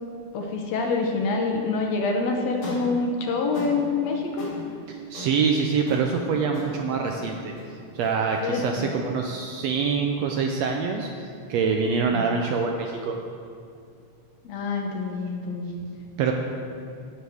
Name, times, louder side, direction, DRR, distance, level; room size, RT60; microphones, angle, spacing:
voice 1, 0.3-4.3 8.4-8.9 12.1-12.4 14.4-15.7, left 4 dB, 70° left, 1 dB, 1.8 m, -26 dB
sound 1, 2.6-10.8, left 1 dB, 90° left, 4.5 m, -42 dB
voice 2, 4.9-7.5 7.9-11.1 11.5-13.1 16.2-16.3, right 5 dB, 80° right, 2 dB, 1.6 m, -25 dB
17.0 x 6.3 x 3.5 m, 2.4 s
omnidirectional pair, 3.5 m